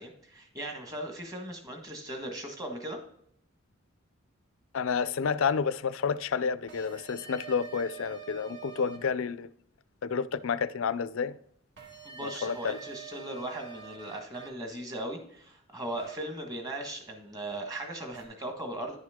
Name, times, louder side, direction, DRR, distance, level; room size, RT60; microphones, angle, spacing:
voice 1, 0.0-3.0 12.0-19.0, right 1 dB, 20° right, 1.5 m, -38 dB
voice 2, 4.7-9.5 10.0-11.4 12.2-12.8, left 6 dB, 75° left, 0.4 m, -30 dB
sound 1, 6.7-9.1 11.8-14.5 16.0-16.2 18.1-18.2, right 7 dB, 55° right, 1.7 m, -45 dB
10.5 x 6.2 x 3.7 m
head